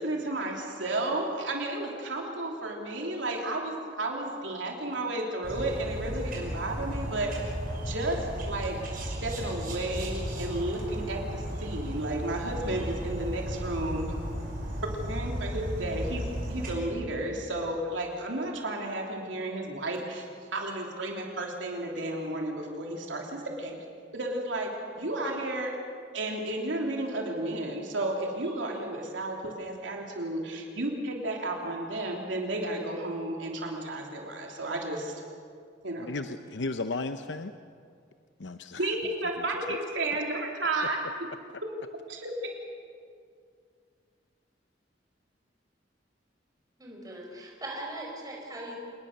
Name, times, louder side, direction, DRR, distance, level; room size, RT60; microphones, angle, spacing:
voice 1, 0.0-7.5 7.8-14.1 15.1-20.2 20.5-23.8 24.1-25.8 26.1-35.1 35.8-36.1 38.8-41.0 41.6-41.7 42.1-42.3, right 2 dB, 85° right, 0 dB, 3.3 m, -32 dB
sound 1, 5.4-16.8, equal, 50° right, 5.9 m, -35 dB
voice 2, 36.0-37.5 38.4-38.9 39.7-39.8, left 3 dB, 75° left, 9 dB, 0.8 m, -34 dB
voice 3, 46.8-48.7, right 1 dB, 20° right, -1 dB, 4.8 m, -40 dB
28.0 x 20.0 x 6.7 m, 2.2 s
head